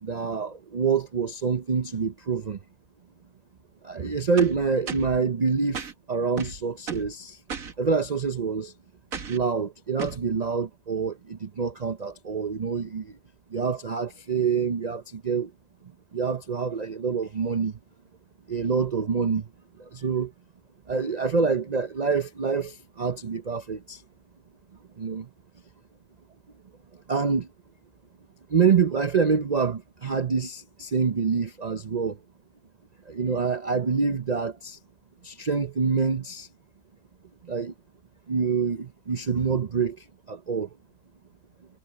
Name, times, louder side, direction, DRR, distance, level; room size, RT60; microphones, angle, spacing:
voice 1, 0.0-2.6 3.8-5.8 6.1-7.4 7.8-8.7 9.3-13.2 13.5-15.5 16.1-17.8 18.5-19.5 19.8-20.3 20.9-24.0 25.0-25.3 27.1-27.5 28.5-32.2 33.1-34.8 35.2-36.5 37.4-37.7 38.3-40.7, right 5 dB, 75° right, 0.3 m, -26 dB
sound 1, 4.4-5.2 5.7-5.9 6.4-7.1 7.5-7.7 9.1-9.4 10.0-10.2, right 6 dB, 55° right, 2.0 m, -35 dB
omnidirectional pair, 1.7 m